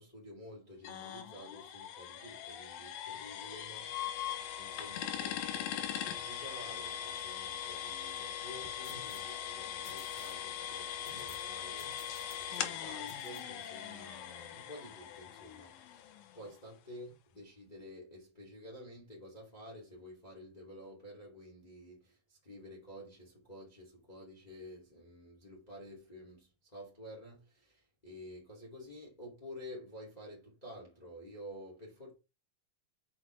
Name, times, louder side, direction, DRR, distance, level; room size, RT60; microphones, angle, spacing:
voice 1, 0.0-32.1, equal, 15° left, 2.1 m, -51 dB
sound 1, 0.8-16.5, left 10 dB, 90° left, 2.7 m, -41 dB
sound 2, 8.8-9.3 9.8-10.4 11.0-11.5 11.8-12.7 13.1-13.4, left 3 dB, 35° left, 3.0 m, -55 dB
6.3 x 6.2 x 3.3 m
omnidirectional pair, 4.0 m